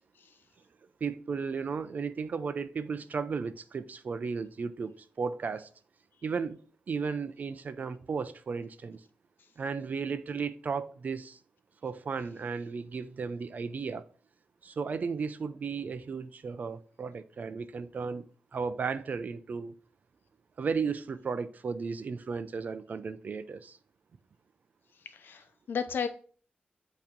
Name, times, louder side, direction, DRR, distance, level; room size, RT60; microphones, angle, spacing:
voice 1, 1.0-5.7 6.2-6.6 6.9-9.0 9.6-11.4 11.8-14.1 14.6-18.3 18.5-19.7 20.6-23.8, right 5 dB, 50° right, 0.6 m, -34 dB
voice 2, 25.0-26.1, left 6 dB, 80° left, 0.8 m, -34 dB
8.4 x 3.0 x 5.2 m
wide cardioid pair, 120°, 3 cm